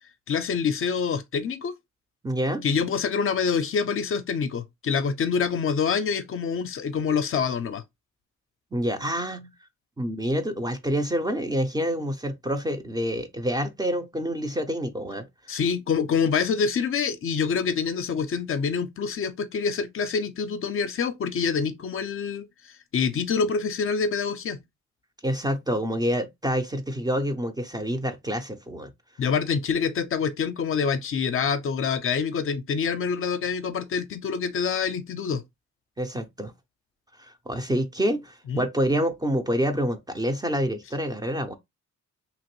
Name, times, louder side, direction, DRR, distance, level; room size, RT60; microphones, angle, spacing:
voice 1, 0.3-1.7 2.6-7.8 15.5-24.6 29.2-35.4 38.5-38.6, left 6 dB, 45° left, 0.5 m, -26 dB
voice 2, 2.2-2.7 8.7-9.5 10.0-15.3 25.2-28.9 36.0-36.5 37.2-41.6, equal, 15° right, 0.4 m, -27 dB
2.9 x 2.5 x 3.0 m
cardioid pair, 90°, 30 cm